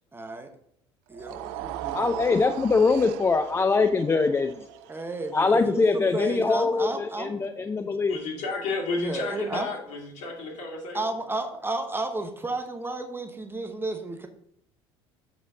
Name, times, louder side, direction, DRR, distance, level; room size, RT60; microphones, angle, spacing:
voice 1, 0.1-0.5 1.1-2.2 4.9-7.4 9.0-9.7 10.9-14.3, right 2 dB, 15° right, 6 dB, 0.9 m, -32 dB
sound 1, 1.1-7.4, right 13 dB, 55° right, 0.4 m, -39 dB
voice 2, 1.9-4.7 5.3-8.2, left 4 dB, 15° left, 9 dB, 0.4 m, -23 dB
voice 3, 8.1-11.1, left 3 dB, 50° left, -1 dB, 2.5 m, -32 dB
7.2 x 5.9 x 3.8 m, 0.70 s
figure-of-eight pair, 65°, 15 cm